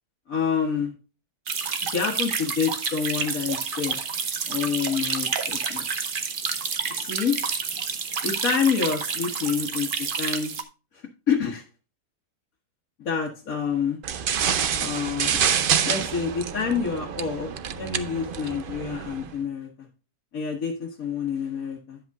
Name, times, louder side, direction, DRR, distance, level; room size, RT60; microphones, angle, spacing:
voice 1, 0.3-0.9 1.9-4.0 4.4-5.9 6.9-7.4 8.2-10.5 10.9-11.6 13.0-14.0 14.8-15.4 15.8-17.5 17.8-19.9 20.3-22.0, left 6 dB, 60° left, -2 dB, 1.8 m, -27 dB
sound 1, 1.5-10.6, right 5 dB, 45° right, 0.8 m, -29 dB
sound 2, 14.0-19.3, right 8 dB, 80° right, 0.4 m, -27 dB
10.5 x 7.9 x 2.3 m, 0.32 s
omnidirectional pair, 1.7 m